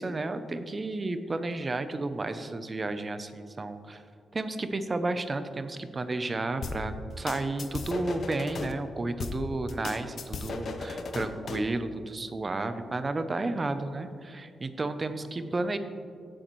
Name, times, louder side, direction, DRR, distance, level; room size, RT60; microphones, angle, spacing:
voice 1, 0.0-4.0 4.3-15.8, right 2 dB, 25° right, 10 dB, 0.5 m, -32 dB
sound 1, 6.6-8.7 9.2-11.7, left 3 dB, 50° left, 0.7 m, -36 dB
15.0 x 6.7 x 3.1 m, 2.3 s
wide cardioid pair, 140°, 0 cm